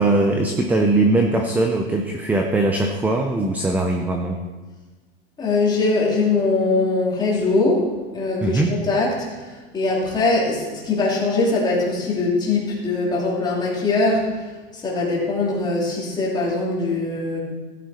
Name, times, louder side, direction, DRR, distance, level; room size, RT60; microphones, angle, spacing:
voice 1, 0.0-4.4 8.4-8.7, right 2 dB, 5° right, 3 dB, 0.5 m, -20 dB
voice 2, 5.4-7.9 8.1-17.4, left 3 dB, 15° left, -4 dB, 2.9 m, -22 dB
15.0 x 9.3 x 4.2 m, 1.3 s
supercardioid pair, 150°, 31 cm